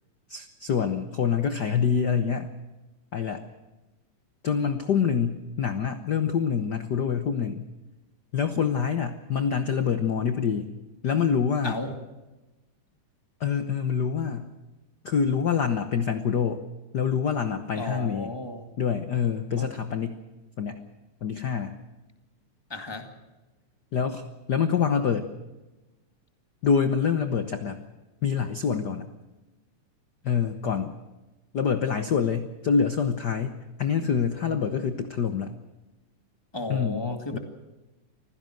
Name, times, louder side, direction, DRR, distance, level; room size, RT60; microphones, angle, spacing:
voice 1, 0.3-2.5 3.1-3.4 4.4-7.7 8.3-10.7 11.0-11.8 13.4-14.5 15.0-16.6 16.9-18.3 18.8-20.2 20.6-20.8 21.2-21.8 23.9-24.2 24.5-25.3 26.6-27.8 28.2-29.1 30.2-31.0 31.5-35.5 36.7-37.4, left 7 dB, 85° left, 9 dB, 0.9 m, -26 dB
voice 2, 11.6-11.9 17.7-18.7 19.6-19.7 22.7-23.1 36.5-37.4, left 1 dB, 10° left, 5 dB, 1.7 m, -34 dB
25.0 x 16.0 x 7.8 m, 1.1 s
omnidirectional pair, 3.5 m